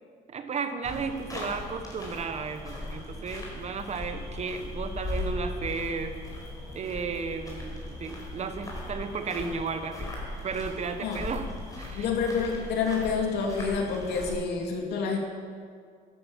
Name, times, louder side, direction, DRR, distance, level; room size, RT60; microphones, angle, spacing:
voice 1, 0.3-6.1 6.7-10.1 10.4-11.4 11.8-12.0, right 5 dB, 40° right, 8 dB, 1.3 m, -34 dB
sound 1, 0.8-14.3, left 2 dB, 20° left, 4.8 m, -38 dB
voice 2, 11.9-15.2, left 5 dB, 75° left, 1 dB, 3.0 m, -28 dB
13.0 x 12.0 x 7.5 m, 2.1 s
cardioid pair, 110°, 17 cm